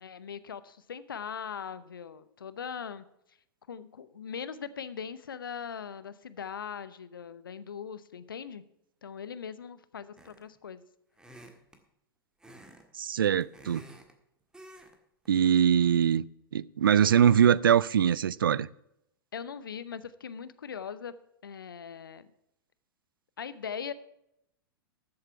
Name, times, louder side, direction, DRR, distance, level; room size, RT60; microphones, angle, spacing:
voice 1, 0.0-3.0 3.7-8.6 9.0-10.8 19.3-21.1 21.4-22.3 23.4-23.9, left 7 dB, 70° left, 0.8 m, -40 dB
sound 1, 10.2-10.6 11.2-11.8 12.4-12.8 13.1-14.1 14.5-14.9 15.2-15.5, right 1 dB, 5° right, 1.6 m, -51 dB
voice 2, 13.0-13.8 15.3-16.2 16.5-18.7, right 9 dB, 70° right, 0.4 m, -22 dB
13.5 x 7.7 x 5.7 m
figure-of-eight pair, 100°, 12 cm